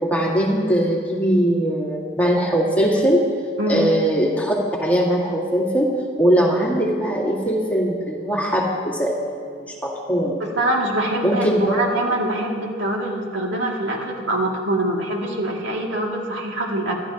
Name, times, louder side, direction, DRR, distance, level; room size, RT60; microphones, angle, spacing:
voice 1, 0.0-3.2 3.7-4.5 4.8-5.9 6.2-10.3 11.2-11.7, equal, 10° left, -3 dB, 2.0 m, -20 dB
voice 2, 10.6-16.9, right 1 dB, 70° right, -2 dB, 2.5 m, -24 dB
25.5 x 12.0 x 3.0 m, 2.2 s
head